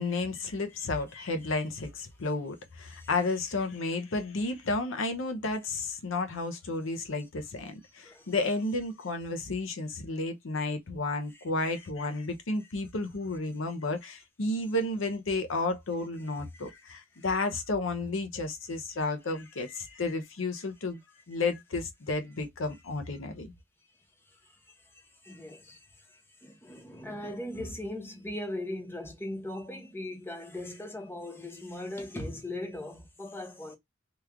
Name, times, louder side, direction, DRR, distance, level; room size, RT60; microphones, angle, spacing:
voice 1, 0.0-21.0 21.3-23.5, left 2 dB, 85° left, 0.7 m, -32 dB
voice 2, 24.9-33.8, left 1 dB, 10° left, 0.8 m, -39 dB
3.0 x 2.4 x 3.4 m
head